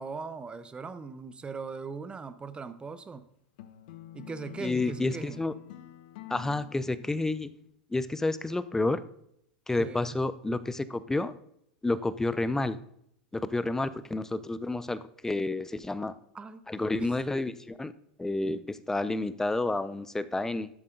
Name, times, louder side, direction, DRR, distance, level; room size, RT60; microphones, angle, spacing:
voice 1, 0.0-3.3 4.1-5.4 9.8-10.1 16.3-17.4, right 5 dB, 20° right, 12 dB, 0.9 m, -40 dB
sound 1, 3.6-7.7, left 13 dB, 65° left, 0.9 m, -47 dB
voice 2, 4.6-5.5 6.3-7.5 7.9-9.0 9.7-11.3 11.8-12.8 13.3-16.1 16.7-17.9 18.2-20.7, left 2 dB, 10° left, 16 dB, 0.6 m, -30 dB
12.5 x 7.6 x 3.8 m, 0.73 s
hypercardioid pair, 100°, 5 cm